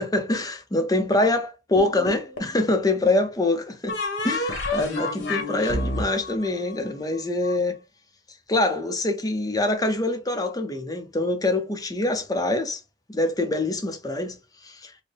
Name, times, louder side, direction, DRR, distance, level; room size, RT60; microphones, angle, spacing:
voice 1, 0.0-4.0 4.2-7.8 8.5-12.8 13.1-14.4 14.6-14.9, left 2 dB, 20° left, 0.6 m, -25 dB
sound 1, 1.8-2.6 3.9-7.5, left 2 dB, 70° left, 1.1 m, -29 dB
4.1 x 2.1 x 3.3 m
head